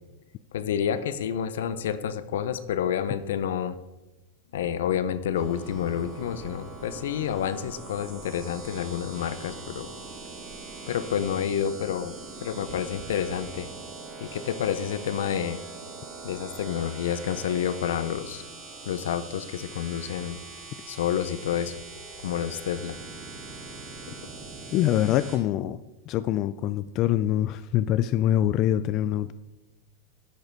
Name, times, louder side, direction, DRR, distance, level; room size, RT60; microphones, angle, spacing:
voice 1, 0.5-3.8 4.5-9.9 10.9-12.1 12.4-13.7 14.2-15.6 16.2-18.4 18.9-20.4 20.9-21.8 22.2-23.0, left 9 dB, 80° left, 12 dB, 0.7 m, -29 dB
sound 1, 5.4-25.4, right 3 dB, 30° right, 2.2 m, -42 dB
voice 2, 24.7-25.8 26.1-29.3, left 12 dB, 40° left, 13 dB, 0.3 m, -24 dB
10.5 x 6.5 x 4.6 m, 1.0 s
supercardioid pair, 130°, 0 cm